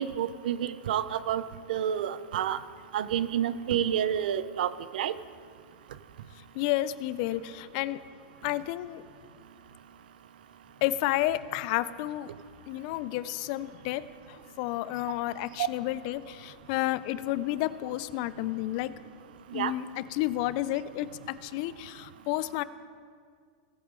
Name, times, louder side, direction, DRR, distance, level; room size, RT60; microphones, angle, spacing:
voice 1, 0.0-1.4 1.7-2.6 2.9-5.1 15.6-15.7 19.5-19.7, right 10 dB, 75° right, 15 dB, 0.5 m, -29 dB
voice 2, 6.4-8.0 8.4-9.0 10.8-12.3 12.7-18.9 19.5-22.6, left 15 dB, 55° left, 16 dB, 0.4 m, -31 dB
17.5 x 7.9 x 3.8 m, 2.1 s
hypercardioid pair, 125°, 5 cm